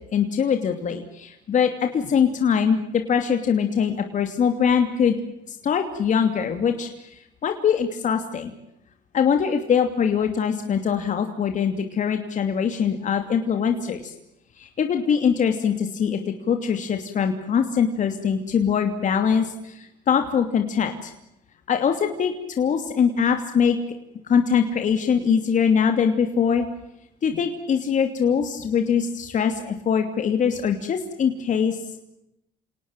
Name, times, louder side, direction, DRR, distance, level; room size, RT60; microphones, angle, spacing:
voice 1, 0.0-5.2 5.5-8.5 9.1-14.1 14.6-21.1 21.7-23.8 24.3-26.7 27.2-31.8, left 7 dB, 45° left, 6 dB, 2.8 m, -22 dB
29.0 x 19.0 x 7.4 m, 0.83 s
cardioid pair, 110°, 17 cm